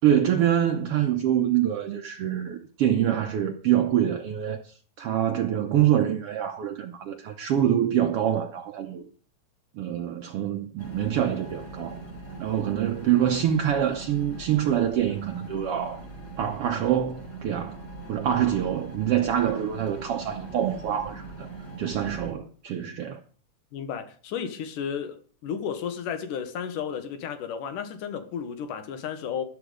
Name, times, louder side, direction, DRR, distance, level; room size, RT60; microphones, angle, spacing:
voice 1, 0.0-4.6 5.0-9.1 9.7-12.0 12.4-16.0 16.4-17.8 18.1-21.5 21.8-23.2, right 10 dB, 75° right, 1.3 m, -25 dB
sound 1, 10.8-22.3, right 3 dB, 30° left, 5.5 m, -41 dB
voice 2, 23.7-25.2 25.4-29.4, left 7 dB, 80° left, 2.9 m, -33 dB
13.0 x 10.5 x 5.0 m
omnidirectional pair, 3.7 m